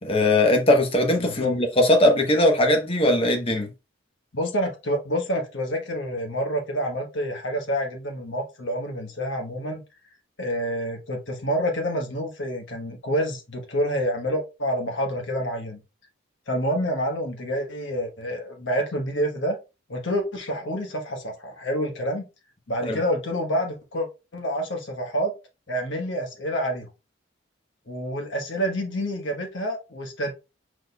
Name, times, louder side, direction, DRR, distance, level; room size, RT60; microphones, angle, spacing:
voice 1, 0.0-3.7 22.9-23.0, left 1 dB, 30° left, 0.9 m, -20 dB
voice 2, 1.2-1.5 4.3-9.8 10.4-15.8 16.5-19.6 19.9-22.3 22.7-25.3 25.7-26.9 27.9-30.3, equal, 65° left, 1.1 m, -28 dB
4.9 x 4.1 x 2.2 m
head